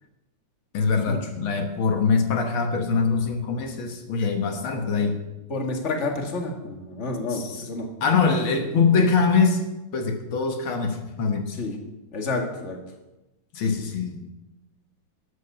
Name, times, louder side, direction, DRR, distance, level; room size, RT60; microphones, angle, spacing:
voice 1, 0.7-5.2 7.3-7.6 8.0-9.6 9.9-11.5 13.5-14.3, left 5 dB, 80° left, 5 dB, 2.1 m, -23 dB
voice 2, 5.5-7.9 11.5-11.8 12.1-12.8, left 3 dB, 35° left, 2 dB, 2.0 m, -29 dB
13.0 x 9.1 x 6.7 m, 0.99 s
omnidirectional pair, 2.2 m